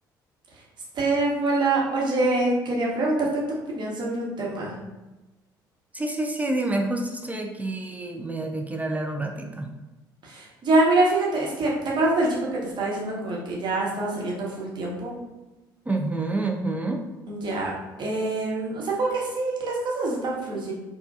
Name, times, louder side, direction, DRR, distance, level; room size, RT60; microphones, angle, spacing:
voice 1, 0.9-4.7 10.2-15.2 17.3-17.7 18.0-20.7, right 2 dB, 45° right, -3 dB, 1.2 m, -25 dB
voice 2, 5.9-9.7 15.9-17.1, right 2 dB, 15° right, 2 dB, 0.4 m, -28 dB
4.5 x 2.4 x 2.4 m, 1.1 s
figure-of-eight pair, 55°, 11 cm